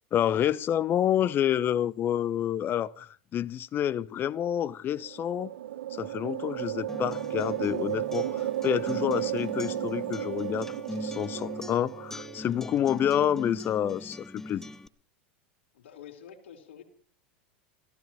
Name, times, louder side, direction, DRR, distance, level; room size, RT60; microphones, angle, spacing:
voice 1, 0.1-5.5 5.9-14.6, left 10 dB, 35° left, 0.8 m, -28 dB
sound 1, 5.0-12.6, right 12 dB, 75° right, 1.1 m, -34 dB
Acoustic guitar, 6.9-14.9, left 1 dB, 5° left, 0.9 m, -41 dB
voice 2, 15.7-16.8, left 8 dB, 70° left, 3.9 m, -48 dB
30.0 x 15.0 x 3.1 m
hypercardioid pair, 95°, 6 cm